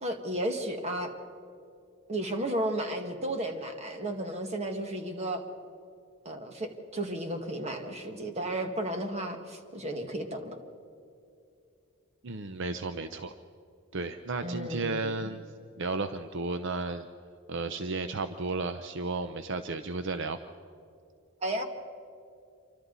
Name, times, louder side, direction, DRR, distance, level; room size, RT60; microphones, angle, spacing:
voice 1, 0.0-1.1 2.1-5.4 6.3-10.6 14.4-15.3 21.4-21.6, right 1 dB, 30° right, 4 dB, 1.9 m, -33 dB
voice 2, 12.2-13.3 13.9-15.4 15.8-17.1 17.5-20.4, right 3 dB, 60° right, 9 dB, 0.7 m, -33 dB
28.0 x 25.0 x 4.1 m, 2.5 s
head